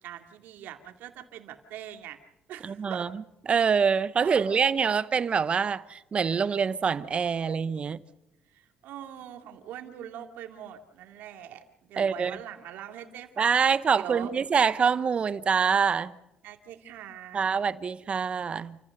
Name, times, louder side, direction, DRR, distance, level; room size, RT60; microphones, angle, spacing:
voice 1, 0.0-2.2 2.5-3.1 4.2-4.8 8.5-13.5 13.9-14.3 16.4-17.6, right 10 dB, 80° right, 2.4 m, -42 dB
voice 2, 2.6-3.1 3.5-8.0 12.0-12.4 13.4-16.2 17.3-18.8, right 6 dB, 40° right, 0.9 m, -25 dB
28.5 x 15.0 x 6.7 m
cardioid pair, 110°, 3 cm